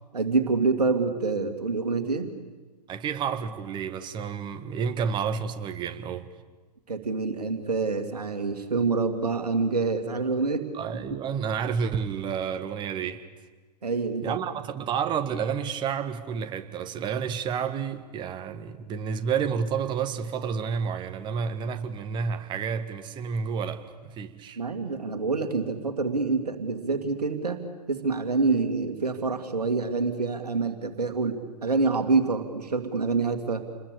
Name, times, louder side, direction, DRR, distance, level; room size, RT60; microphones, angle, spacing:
voice 1, 0.1-2.3 6.9-10.7 13.8-14.4 24.6-27.6 27.9-33.6, right 4 dB, 70° right, 2.4 m, -26 dB
voice 2, 2.9-6.3 10.7-13.2 14.2-24.6, right 6 dB, 20° right, 1.7 m, -30 dB
28.0 x 21.5 x 8.5 m
figure-of-eight pair, 110°, 21 cm